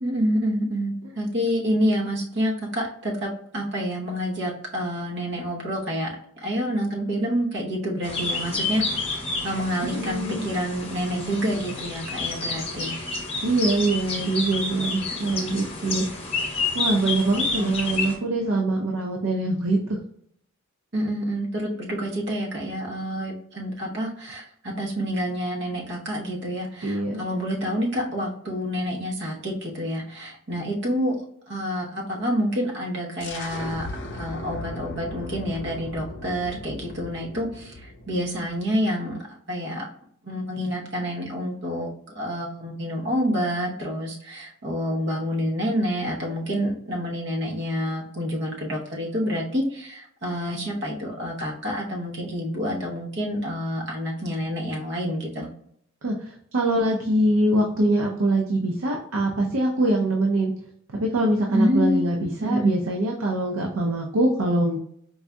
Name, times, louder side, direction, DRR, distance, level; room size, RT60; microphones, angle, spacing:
voice 1, 0.0-6.1 6.4-12.9 15.2-15.6 17.5-18.1 20.9-31.2 31.5-33.9 34.1-39.9 40.2-41.9 42.1-55.5 61.5-62.1 62.4-62.7, equal, 55° right, -2 dB, 0.9 m, -28 dB
sound 1, 8.0-18.1, left 3 dB, 30° left, 0.9 m, -30 dB
voice 2, 9.8-10.5 13.4-16.0 16.7-20.0 26.8-27.2 56.0-60.5 60.9-64.8, right 1 dB, 80° right, 0 dB, 0.5 m, -23 dB
sound 2, 33.2-38.7, left 2 dB, 60° left, 0.5 m, -37 dB
4.7 x 2.6 x 2.2 m, 0.68 s
head